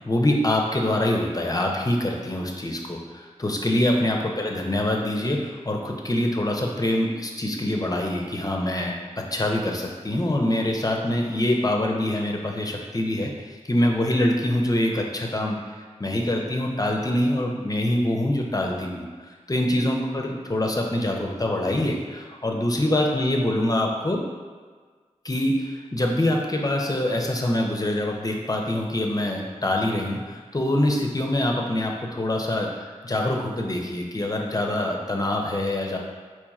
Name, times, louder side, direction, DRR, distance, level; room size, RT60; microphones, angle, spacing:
voice 1, 0.1-19.1 19.5-24.2 25.2-36.0, left 1 dB, 30° left, 0 dB, 0.5 m, -25 dB
4.4 x 2.9 x 2.3 m, 1.5 s
wide cardioid pair, 50°, 13 cm